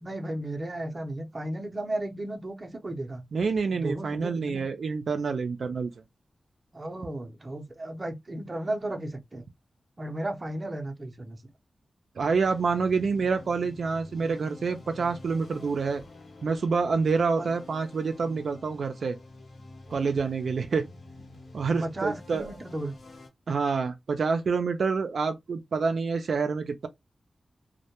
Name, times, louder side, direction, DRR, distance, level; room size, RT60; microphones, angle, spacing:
voice 1, 0.0-3.3 3.7-4.7 6.7-9.4 10.0-11.4 17.4-17.5 21.8-22.9, right 1 dB, 30° right, 0.6 m, -34 dB
voice 2, 3.3-5.9 12.2-16.0 16.4-19.2 19.9-20.9 21.5-22.5 23.5-26.9, right 4 dB, 80° right, 0.3 m, -27 dB
sound 1, 12.4-23.3, left 2 dB, 85° left, 0.8 m, -48 dB
2.1 x 2.1 x 2.8 m
wide cardioid pair, 130°, 0 cm